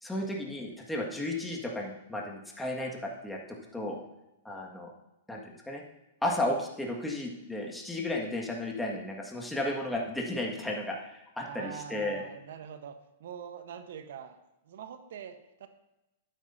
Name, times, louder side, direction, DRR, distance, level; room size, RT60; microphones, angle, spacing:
voice 1, 0.0-4.0 4.4-4.9 5.3-5.8 6.2-12.2, left 1 dB, 5° left, -1 dB, 1.7 m, -34 dB
voice 2, 11.4-12.9 13.2-14.4 14.6-15.7, right 8 dB, 70° right, 9 dB, 1.0 m, -44 dB
12.0 x 9.2 x 2.7 m, 0.95 s
hypercardioid pair, 125°, 0 cm